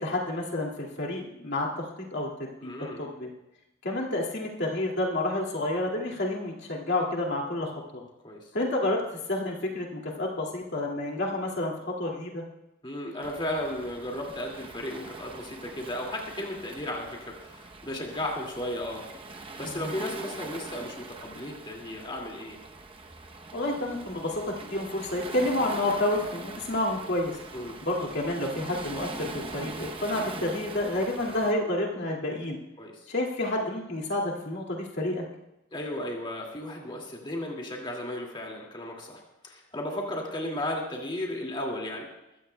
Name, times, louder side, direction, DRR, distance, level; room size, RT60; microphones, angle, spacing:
voice 1, 0.0-2.7 3.0-3.3 3.8-8.0 8.5-9.0 9.3-11.7 12.0-12.4 19.7-20.0 23.5-27.3 27.8-32.6 33.1-35.2, left 1 dB, 60° left, -2 dB, 2.3 m, -29 dB
voice 2, 2.6-3.1 8.2-8.4 12.8-19.0 19.3-22.6 27.5-27.8 32.8-32.9 35.7-42.1, left 1 dB, 25° left, -1 dB, 2.2 m, -35 dB
Waves surf, 13.2-31.5, right 3 dB, 25° right, 0.8 m, -42 dB
22.0 x 15.0 x 2.3 m, 0.90 s
head